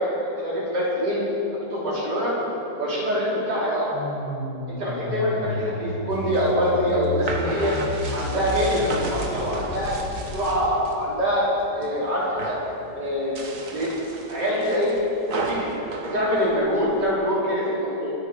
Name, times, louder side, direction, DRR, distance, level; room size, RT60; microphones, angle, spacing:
voice 1, 0.4-1.2 1.7-2.3 2.8-3.9 4.7-7.7 8.1-10.0 10.3-11.5 11.7-12.6 12.9-13.4 13.7-13.9 14.3-14.9 15.5-15.8 16.1-18.1, equal, 80° right, -7 dB, 3.8 m, -24 dB
sound 1, 3.9-10.7, left 2 dB, 70° left, 5.0 m, -32 dB
sound 2, 6.1-11.0 11.4-11.9 12.2-12.7 13.2-17.1, right 3 dB, 50° right, 1.7 m, -34 dB
24.0 x 9.1 x 5.2 m, 3.0 s
omnidirectional pair, 1.8 m